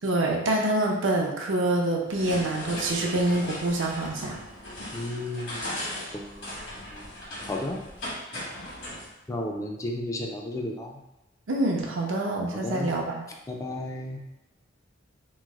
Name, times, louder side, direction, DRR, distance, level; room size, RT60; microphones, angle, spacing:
voice 1, 0.0-4.4 11.5-13.2, right 1 dB, 80° right, 0 dB, 0.6 m, -26 dB
sound 1, 2.1-9.1, left 1 dB, 70° left, 1.3 m, -38 dB
voice 2, 4.9-5.8 6.1-6.5 6.9-7.1 7.5-7.8 9.3-11.0 12.6-12.9 13.5-14.2, left 1 dB, 15° left, 1 dB, 0.3 m, -33 dB
3.0 x 2.0 x 3.5 m, 0.97 s
head